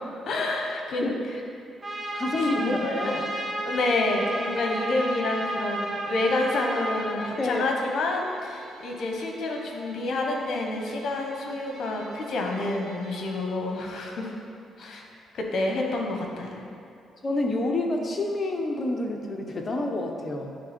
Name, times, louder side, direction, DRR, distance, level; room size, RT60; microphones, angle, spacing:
voice 1, 0.3-1.1 2.4-3.3 3.6-14.3 14.8-15.0 15.3-16.6, left 2 dB, 65° left, 1 dB, 1.1 m, -28 dB
Trumpet, 1.8-7.2, right 1 dB, 20° right, 1.1 m, -32 dB
voice 2, 2.1-3.2 7.4-7.7 14.8-14.9 17.2-20.6, left 2 dB, 35° left, 2 dB, 0.9 m, -28 dB
Bowed string instrument, 7.2-13.4, right 2 dB, 55° right, 1.7 m, -48 dB
10.5 x 3.7 x 4.4 m, 2.5 s
cardioid pair, 90°, 0 cm